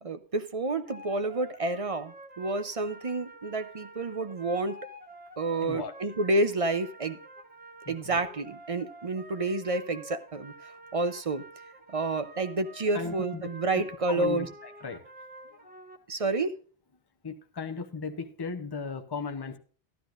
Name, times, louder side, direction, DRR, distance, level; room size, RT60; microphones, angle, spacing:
voice 1, 0.0-4.8 5.4-7.2 7.9-10.5 10.9-11.4 11.9-14.5 16.1-16.6, right 2 dB, 40° right, 11 dB, 0.7 m, -29 dB
sound 1, 0.8-16.0, right 1 dB, 10° right, 1.2 m, -49 dB
voice 2, 5.6-5.9 7.8-8.2 12.9-15.0 15.6-15.7 17.2-19.6, left 5 dB, 25° left, 7 dB, 0.8 m, -36 dB
12.5 x 12.0 x 2.5 m, 0.40 s
omnidirectional pair, 1.1 m